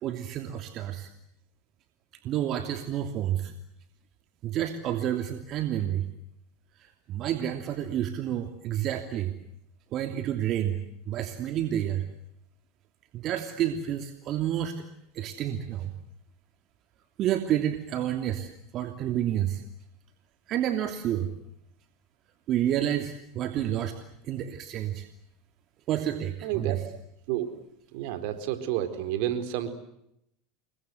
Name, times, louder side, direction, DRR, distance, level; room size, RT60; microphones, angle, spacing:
voice 1, 0.0-1.1 2.2-3.5 4.4-6.1 7.1-9.4 9.9-10.8 11.1-12.0 13.1-14.8 15.1-15.9 17.2-19.6 20.5-21.3 22.5-23.9 24.3-25.1 25.9-26.8, right 11 dB, 50° right, 7 dB, 2.9 m, -29 dB
voice 2, 26.4-26.8 27.3-27.5 27.9-29.7, right 12 dB, 65° right, 10 dB, 4.2 m, -30 dB
29.0 x 23.5 x 8.0 m, 0.78 s
hypercardioid pair, 95°, 0 cm